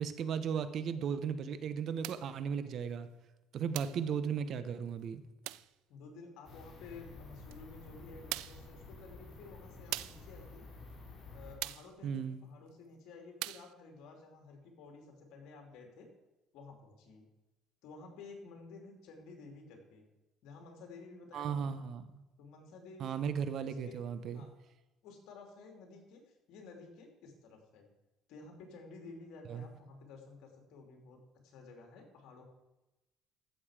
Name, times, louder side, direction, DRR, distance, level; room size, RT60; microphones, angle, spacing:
voice 1, 0.0-3.1 3.5-5.2 12.0-12.4 21.3-22.2 23.0-24.4 29.5-29.6, right 7 dB, 55° right, 12 dB, 0.9 m, -36 dB
sound 1, 2.0-2.3 3.7-4.1 5.4-5.7 7.5-7.6 8.3-8.7 9.9-10.3 11.6-11.9 13.4-13.7, right 19 dB, 90° right, 0.3 m, -41 dB
voice 2, 5.9-10.7 11.3-16.1 16.5-17.3 17.8-20.0 20.4-21.8 22.4-23.3 23.8-24.0 24.3-24.5 25.0-27.9 28.3-32.4, left 3 dB, 75° left, 3 dB, 2.8 m, -53 dB
sound 2, 6.4-11.6, left 3 dB, 45° left, 3.9 m, -51 dB
14.5 x 7.0 x 5.0 m, 1.0 s
cardioid pair, 110°, 0 cm